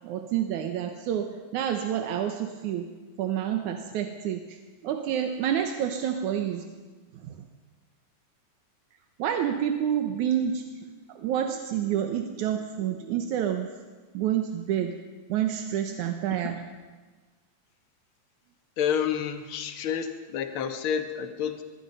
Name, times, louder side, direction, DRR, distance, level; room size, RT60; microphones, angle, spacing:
voice 1, 0.0-2.9 3.2-6.7 7.1-7.5 9.2-13.7 14.1-15.0 15.3-16.6, right 9 dB, 80° right, 5 dB, 2.5 m, -29 dB
voice 2, 18.8-21.6, left 8 dB, 50° left, 7 dB, 1.9 m, -29 dB
24.5 x 22.5 x 5.5 m, 1.3 s
omnidirectional pair, 3.4 m